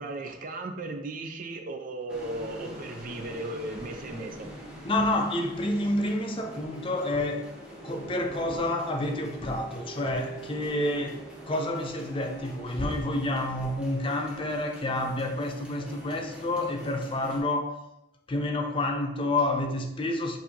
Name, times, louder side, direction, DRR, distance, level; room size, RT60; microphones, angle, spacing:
voice 1, 0.0-4.5, right 2 dB, 45° right, 0.5 m, -36 dB
sound 1, 2.1-17.4, right 1 dB, 5° right, 0.8 m, -44 dB
voice 2, 4.8-7.5 7.8-17.9 18.3-20.4, left 1 dB, 25° left, 0.4 m, -29 dB
6.5 x 2.7 x 2.9 m
head